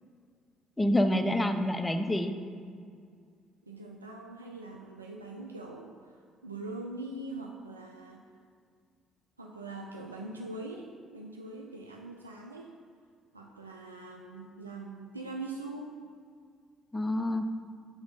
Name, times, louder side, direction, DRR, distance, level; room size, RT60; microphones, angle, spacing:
voice 1, 0.8-2.3 16.9-17.4, left 1 dB, 15° left, 7 dB, 0.5 m, -27 dB
voice 2, 3.7-8.2 9.4-12.7 13.3-16.0, right 2 dB, 85° right, 0 dB, 0.4 m, -42 dB
6.0 x 3.9 x 5.5 m, 2.1 s
figure-of-eight pair, 50°, 0 cm